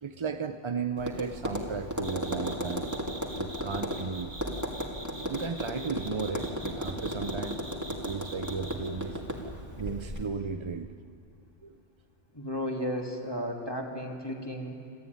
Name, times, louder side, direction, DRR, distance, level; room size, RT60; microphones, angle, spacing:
voice 1, 0.0-2.9 3.4-4.3 5.2-7.6 7.9-9.2 9.8-10.9 11.6-11.8, right 5 dB, 35° right, 8 dB, 0.5 m, -35 dB
Tap, 1.0-10.3, equal, 15° right, 2.4 m, -35 dB
sound 1, 2.0-8.9, right 2 dB, 55° right, 3.2 m, -44 dB
voice 2, 12.3-14.8, equal, 20° left, 1 dB, 2.5 m, -34 dB
27.0 x 14.5 x 9.4 m, 2.4 s
omnidirectional pair, 1.2 m